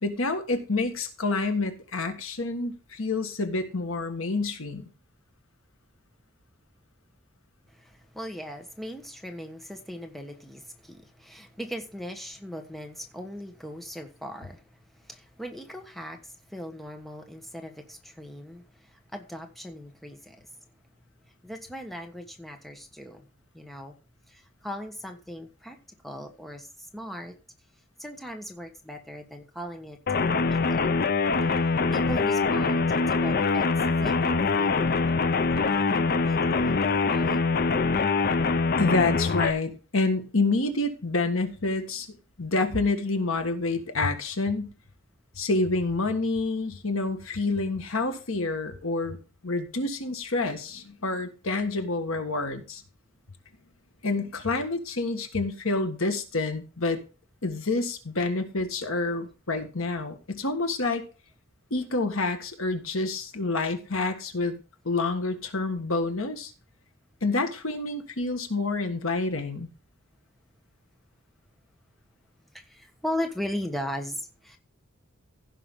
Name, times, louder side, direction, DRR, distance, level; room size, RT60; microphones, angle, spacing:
voice 1, 0.0-4.9 38.8-42.1 42.4-44.7 45.3-49.2 49.4-52.8 54.0-57.0 57.4-61.0 61.7-64.6 64.8-66.5 67.2-69.7, left 3 dB, 85° left, 6 dB, 1.6 m, -28 dB
voice 2, 7.7-20.5 21.3-23.3 23.5-23.9 24.3-25.8 26.0-27.3 28.0-30.0 30.5-30.9 31.4-35.0 35.5-36.7 37.1-37.4 72.5-74.6, equal, ahead, 4 dB, 1.2 m, -38 dB
sound 1, 30.1-39.5, left 4 dB, 45° left, 0.6 m, -24 dB
16.0 x 5.7 x 3.7 m, 0.34 s
head